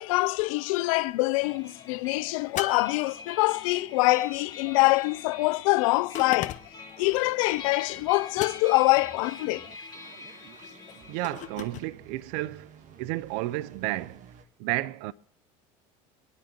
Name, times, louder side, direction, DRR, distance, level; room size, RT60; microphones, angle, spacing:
voice 1, 0.0-6.6 7.0-9.7, left 22 dB, 75° left, 0.4 m, -25 dB
sound 1, 1.4-11.7, left 4 dB, 25° left, 1.4 m, -45 dB
sound 2, 2.6-3.7 6.1-6.9 8.4-9.0 11.2-11.9, left 11 dB, 45° left, 0.7 m, -37 dB
sound 3, 7.0-14.4, right 6 dB, 45° right, 1.3 m, -53 dB
voice 2, 11.1-12.7 13.0-14.3 14.6-15.1, right 17 dB, 65° right, 0.4 m, -32 dB
24.5 x 9.6 x 2.9 m
supercardioid pair, 90°, 17 cm